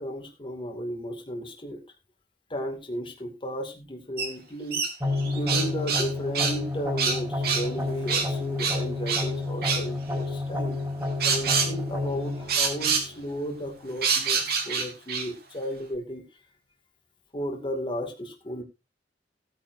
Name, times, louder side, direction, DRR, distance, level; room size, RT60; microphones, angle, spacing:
voice 1, 0.0-1.8 2.5-4.8 5.2-10.8 11.2-16.2 17.3-18.6, equal, 30° left, 2 dB, 2.3 m, -34 dB
sound 1, 4.2-4.3 4.7-6.1 6.3-6.6 7.0-7.7 8.1-8.3 8.6-9.3 9.6-9.8 11.2-11.7 12.5-13.1 14.0-15.3, right 5 dB, 60° right, 3.1 m, -26 dB
sound 2, 5.0-14.0, left 2 dB, 15° right, 4.8 m, -30 dB
18.0 x 9.2 x 2.6 m, 0.25 s
head